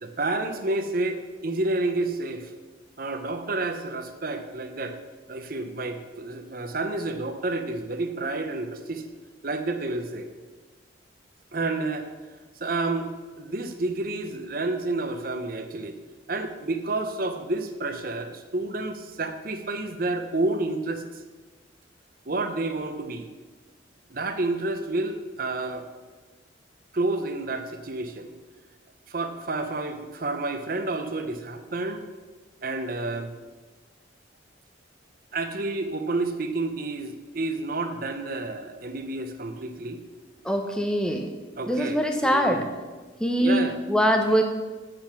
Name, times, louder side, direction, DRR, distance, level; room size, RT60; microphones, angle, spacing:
voice 1, 0.0-2.5 3.0-5.0 5.3-9.0 9.4-10.3 11.5-12.1 12.6-13.1 13.4-15.9 16.3-21.0 22.3-23.3 24.1-25.9 26.9-28.3 29.1-32.1 32.6-33.3 35.3-40.0 41.6-42.6 43.4-43.8, right 2 dB, 45° right, 7 dB, 0.8 m, -30 dB
voice 2, 40.4-41.3 41.7-42.7 43.2-44.4, equal, 5° left, 4 dB, 0.7 m, -23 dB
7.7 x 6.8 x 5.9 m, 1.3 s
head